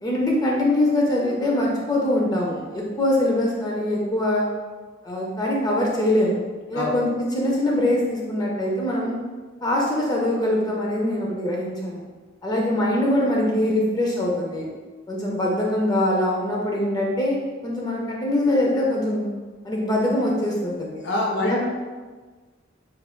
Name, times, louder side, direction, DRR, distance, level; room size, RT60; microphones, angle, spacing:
voice 1, 0.0-4.5 5.0-6.4 6.7-9.2 9.6-12.0 12.4-14.7 15.1-17.4 17.6-19.3 19.6-21.0 21.4-21.7, left 1 dB, 20° left, -3 dB, 0.4 m, -23 dB
voice 2, 21.0-21.7, left 1 dB, 60° left, -1 dB, 0.7 m, -25 dB
3.2 x 2.2 x 3.6 m, 1.4 s
head